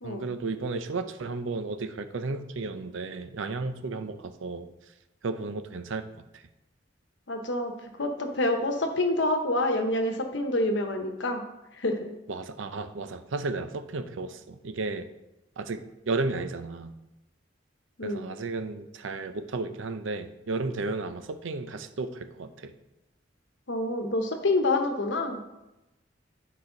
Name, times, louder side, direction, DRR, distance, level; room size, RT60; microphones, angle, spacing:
voice 1, 0.0-4.7 5.2-6.0 6.3-6.4 12.3-15.1 15.6-16.9 18.0-22.7, right 3 dB, 90° right, 10 dB, 0.6 m, -33 dB
voice 2, 7.3-7.7 8.0-11.4 11.8-12.1 18.0-18.2 23.7-25.4, left 2 dB, 65° left, 5 dB, 1.0 m, -27 dB
9.7 x 4.9 x 3.9 m, 0.97 s
head